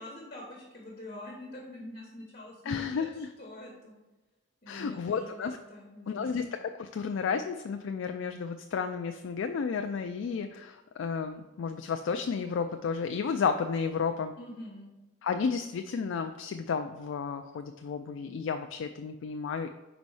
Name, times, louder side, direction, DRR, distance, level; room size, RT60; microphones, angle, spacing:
voice 1, 0.0-3.9 4.6-6.5 14.4-14.9, left 1 dB, 40° left, -3 dB, 1.2 m, -45 dB
voice 2, 2.7-3.3 4.7-5.6 6.1-14.3 15.2-19.7, left 5 dB, 65° left, 7 dB, 0.3 m, -32 dB
5.3 x 4.0 x 4.8 m, 1.1 s
head